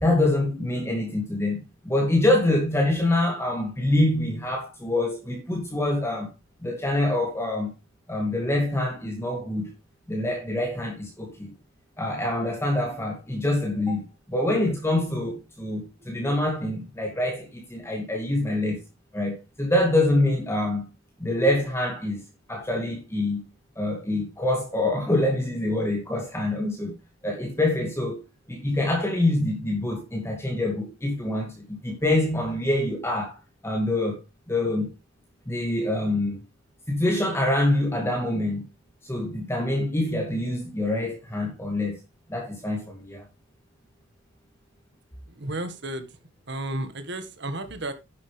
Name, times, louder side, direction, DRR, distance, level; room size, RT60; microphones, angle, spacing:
voice 1, 0.0-6.3 6.6-7.7 8.1-9.7 10.1-11.5 12.0-14.0 14.3-18.8 19.1-20.9 21.2-22.2 22.5-23.4 23.8-26.9 27.2-28.2 28.5-34.2 34.5-34.9 35.5-36.4 36.9-38.7 39.0-42.0 42.3-43.2, left 1 dB, 15° left, 2.2 m, -25 dB
voice 2, 45.4-46.1 46.5-47.9, right 1 dB, 55° right, 1.8 m, -32 dB
11.0 x 8.3 x 3.5 m
head